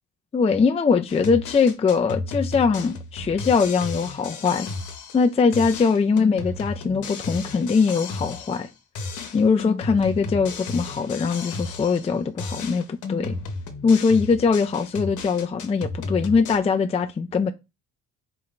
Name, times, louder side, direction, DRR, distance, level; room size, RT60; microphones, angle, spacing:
voice 1, 0.3-4.7 5.1-8.7 9.3-13.4 13.8-17.5, left 5 dB, 20° left, 0.4 m, -21 dB
sound 1, 1.1-5.3 5.5-8.7 8.9-12.1 12.4-16.6, left 3 dB, 75° left, 0.9 m, -33 dB
4.4 x 2.1 x 3.9 m
cardioid pair, 90°, 30 cm